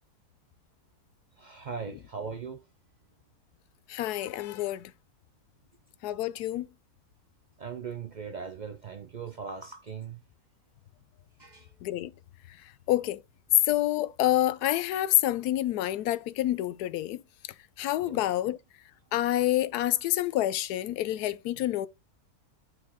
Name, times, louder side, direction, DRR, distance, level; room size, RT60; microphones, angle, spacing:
voice 1, 1.4-2.6 7.6-10.2 11.4-11.7 18.0-18.2, right 6 dB, 80° right, 0.4 m, -39 dB
voice 2, 3.9-4.9 6.0-6.7 11.8-12.1 12.9-13.2 13.7-17.2 17.8-18.6 19.1-21.9, left 14 dB, 85° left, 1.1 m, -28 dB
9.0 x 3.2 x 3.5 m
omnidirectional pair, 1.6 m